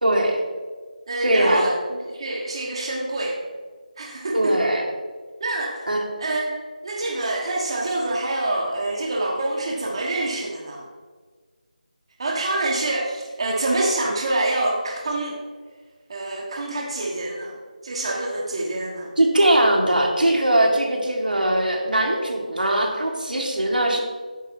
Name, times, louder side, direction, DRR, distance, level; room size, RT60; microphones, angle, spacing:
voice 1, 0.0-0.4 1.2-1.6 4.3-4.8 5.9-6.0 19.2-24.0, right 1 dB, 85° right, 0 dB, 1.9 m, -20 dB
voice 2, 1.1-3.4 4.0-4.5 5.4-5.9 6.2-10.8 12.2-15.4 16.1-17.6 17.8-19.1, right 2 dB, 40° right, -2 dB, 1.2 m, -26 dB
8.5 x 6.3 x 4.5 m, 1.5 s
figure-of-eight pair, 165°, 5 cm